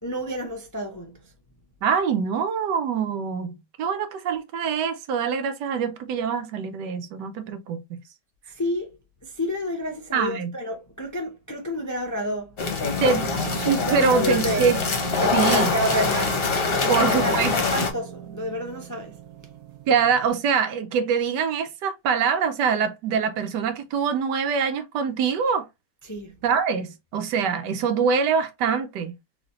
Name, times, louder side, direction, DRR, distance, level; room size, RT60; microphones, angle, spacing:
voice 1, 0.0-1.2 8.5-8.9 9.2-12.6 13.9-14.7 15.2-19.2 26.0-26.4, equal, 25° left, 0.4 m, -30 dB
voice 2, 1.8-3.5 3.8-8.0 10.1-10.5 13.0-13.3 13.7-14.8 15.3-15.7 16.9-17.5 19.9-25.6 26.4-29.1, right 6 dB, 85° right, 1.4 m, -24 dB
sound 1, 12.6-17.9, left 4 dB, 40° left, 1.0 m, -24 dB
sound 2, 13.1-20.3, right 10 dB, 65° right, 1.1 m, -37 dB
4.2 x 3.1 x 3.0 m
omnidirectional pair, 1.8 m